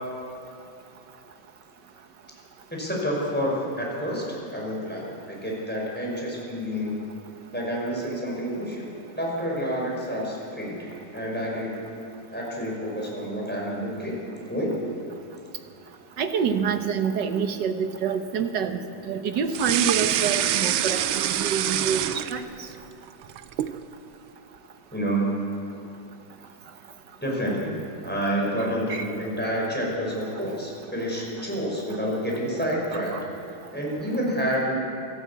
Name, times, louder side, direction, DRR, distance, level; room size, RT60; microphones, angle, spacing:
voice 1, 2.7-7.0 7.5-8.9 9.2-11.8 12.3-14.2 14.5-14.8 24.9-25.4 27.2-27.7 28.0-33.2 33.7-34.8, equal, 5° left, -3 dB, 5.4 m, -28 dB
voice 2, 16.2-18.8 19.1-22.4 28.9-29.1 32.9-33.2, right 6 dB, 60° right, 7 dB, 1.7 m, -27 dB
sound 1, 19.5-22.7 23.1-23.8, right 11 dB, 85° right, 1.6 m, -25 dB
27.0 x 12.5 x 8.4 m, 2.8 s
omnidirectional pair, 2.2 m